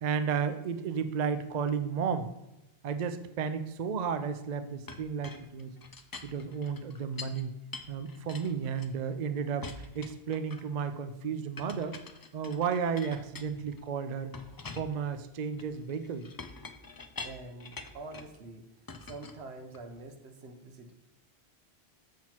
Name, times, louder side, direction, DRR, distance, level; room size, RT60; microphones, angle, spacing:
voice 1, 0.0-2.3 2.8-5.7 6.2-7.5 7.9-12.0 12.3-14.3 14.7-16.3, right 6 dB, 50° right, 10 dB, 0.6 m, -33 dB
Chink clink, 4.9-7.4 7.7-9.2 9.6-10.8 11.6-13.9 14.3-18.4 18.9-20.0, left 3 dB, 35° left, 0.3 m, -46 dB
voice 2, 17.2-18.7 19.0-20.9, right 2 dB, 80° right, 5 dB, 1.2 m, -46 dB
7.5 x 5.9 x 4.4 m, 0.95 s
omnidirectional pair, 1.1 m